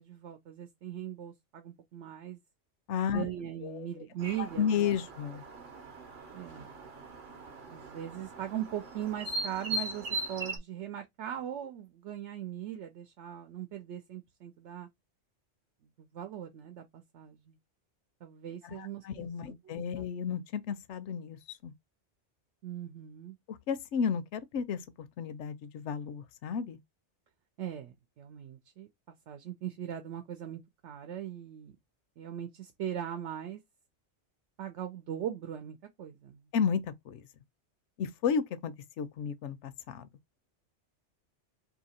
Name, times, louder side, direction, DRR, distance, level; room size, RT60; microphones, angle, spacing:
voice 1, 0.0-2.4 3.1-4.9 6.3-6.7 7.7-14.9 16.0-17.6 18.2-20.1 22.6-23.4 27.6-28.9 29.3-31.7 32.2-33.6 34.6-36.5, right 10 dB, 75° right, 0.9 m, -40 dB
voice 2, 2.9-3.2 3.6-3.9 4.4-5.4 18.6-21.7 23.5-24.8 25.2-26.8 36.5-37.2 38.0-40.1, left 7 dB, 80° left, 0.9 m, -33 dB
sound 1, 4.2-10.6, right 2 dB, 50° right, 0.8 m, -40 dB
2.8 x 2.7 x 4.2 m
omnidirectional pair, 1.2 m